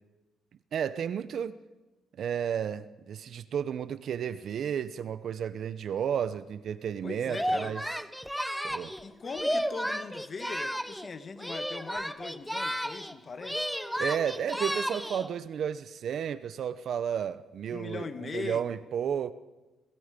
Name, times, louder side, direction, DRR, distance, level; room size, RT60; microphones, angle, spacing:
voice 1, 0.7-1.6 2.2-7.8 8.6-8.9 14.0-19.3, right 8 dB, 65° right, 0.9 m, -32 dB
voice 2, 7.0-7.7 9.0-13.7 17.7-18.6, left 4 dB, 40° left, 1.7 m, -40 dB
Singing, 7.3-11.1 11.4-13.1 13.4-15.3, equal, ahead, 1.0 m, -33 dB
27.5 x 20.5 x 5.3 m
cardioid pair, 90°, 0 cm